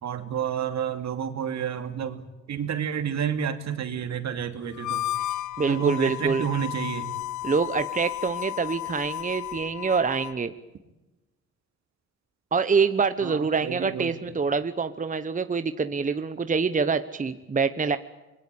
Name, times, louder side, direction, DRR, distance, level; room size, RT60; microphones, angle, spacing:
voice 1, 0.0-2.2 2.5-5.1 5.6-7.1 13.2-14.2, right 8 dB, 65° right, 8 dB, 2.8 m, -30 dB
Harmonica, 4.7-10.4, left 15 dB, 75° left, 0.8 m, -33 dB
voice 2, 5.6-6.4 7.4-10.5 12.5-18.0, right 5 dB, 25° right, 11 dB, 1.1 m, -25 dB
26.5 x 21.0 x 8.7 m, 1.1 s
cardioid pair, 90°, 30 cm